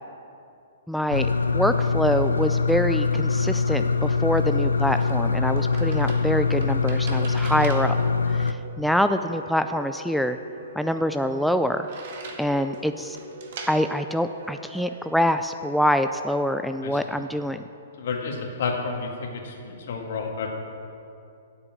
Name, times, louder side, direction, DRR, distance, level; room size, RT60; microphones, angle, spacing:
voice 1, 0.9-1.3 1.5-7.9 8.3-10.4 10.8-11.9 12.4-13.2 13.7-17.6, equal, ahead, 8 dB, 0.3 m, -25 dB
sound 1, 1.1-8.5, left 4 dB, 90° left, 0.3 m, -23 dB
Keyboard (musical), 3.8-16.2, right 1 dB, 85° right, 2.9 m, -43 dB
sound 2, 4.3-15.2, right 4 dB, 55° right, 1.6 m, -45 dB
voice 2, 16.8-17.2 18.0-20.5, left 4 dB, 60° left, 2 dB, 1.8 m, -31 dB
8.6 x 7.0 x 8.6 m, 2.5 s
hypercardioid pair, 120°, 0 cm